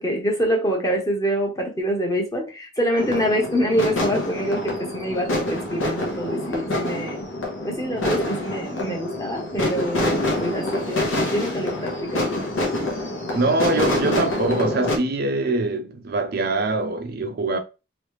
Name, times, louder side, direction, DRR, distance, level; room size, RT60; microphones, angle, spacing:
voice 1, 0.0-7.2 7.6-12.3, equal, 20° left, 0.9 m, -25 dB
sound 1, 3.0-15.0, left 1 dB, 90° left, 1.1 m, -26 dB
voice 2, 13.3-17.6, right 2 dB, 50° right, 0.4 m, -23 dB
3.1 x 3.1 x 3.1 m
head